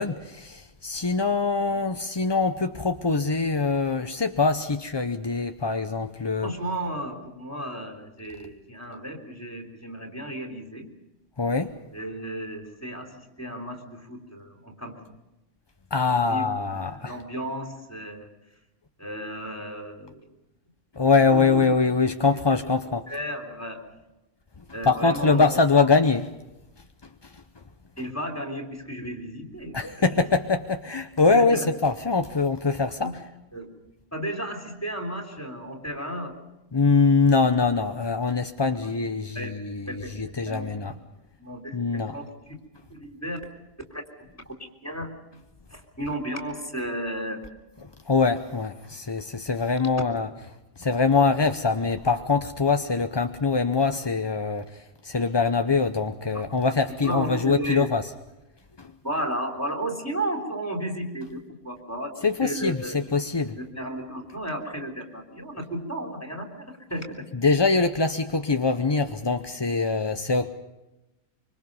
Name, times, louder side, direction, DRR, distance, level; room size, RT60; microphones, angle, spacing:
voice 1, 0.0-6.5 11.4-11.7 15.9-17.1 21.0-23.0 24.9-26.3 29.7-33.1 36.7-40.9 41.7-42.1 48.1-50.3 50.8-58.0 58.8-58.9 62.2-63.6 67.4-70.5, left 4 dB, 25° left, 7 dB, 0.5 m, -23 dB
voice 2, 6.4-10.9 11.9-15.1 16.1-18.3 19.0-20.3 21.3-21.8 22.5-22.6 23.1-23.8 24.7-25.6 28.0-30.2 31.3-31.7 33.0-33.2 33.5-33.7 34.1-36.3 39.3-39.5 39.9-40.1 40.4-40.7 41.4-42.6 42.9-43.4 43.9-44.0 44.3-45.1 45.7-47.4 56.3-56.5 57.0-57.9 59.0-63.0 63.6-67.1, right 1 dB, 10° left, 2 dB, 3.6 m, -34 dB
25.0 x 25.0 x 5.4 m, 0.97 s
omnidirectional pair, 1.5 m